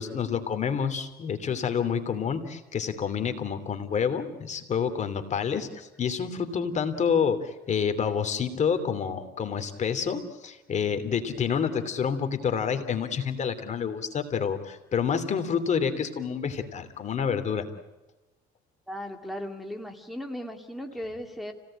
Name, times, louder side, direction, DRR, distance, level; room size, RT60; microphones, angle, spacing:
voice 1, 0.0-17.7, left 7 dB, 45° left, 9 dB, 3.0 m, -28 dB
voice 2, 18.9-21.5, equal, ahead, 2 dB, 2.5 m, -37 dB
30.0 x 18.0 x 8.8 m, 1.1 s
cardioid pair, 110°, 17 cm